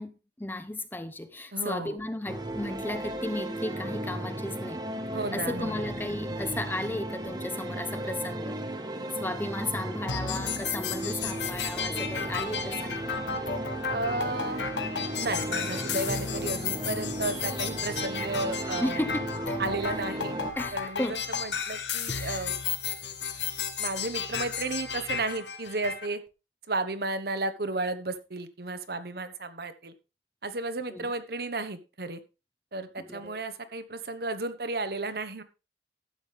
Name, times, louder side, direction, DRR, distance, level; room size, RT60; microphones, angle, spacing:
voice 1, 0.0-4.8 5.3-8.6 9.2-13.1 18.8-19.9 20.6-21.2 22.1-22.5 30.9-31.1 33.0-33.4, left 1 dB, 10° left, 0.6 m, -35 dB
voice 2, 1.5-2.0 5.1-5.9 13.9-14.6 15.2-19.0 19.6-20.4 20.7-22.5 23.8-26.2 26.7-29.9 30.4-32.2 32.7-35.4, right 2 dB, 60° right, 1.1 m, -33 dB
sound 1, 2.3-20.5, right 1 dB, 25° right, 1.1 m, -35 dB
sound 2, 10.1-26.1, left 6 dB, 85° left, 1.5 m, -34 dB
12.5 x 8.3 x 3.4 m
head